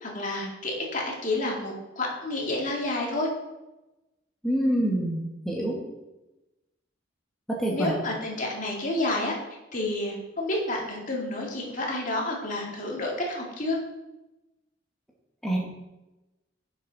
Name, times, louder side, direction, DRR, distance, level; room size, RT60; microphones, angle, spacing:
voice 1, 0.0-3.3 7.7-9.3 9.7-13.8, left 2 dB, 45° left, -1 dB, 2.4 m, -30 dB
voice 2, 4.4-5.8 7.6-7.9 15.4-15.6, right 1 dB, ahead, -4 dB, 1.7 m, -26 dB
11.0 x 7.2 x 4.2 m, 0.99 s
head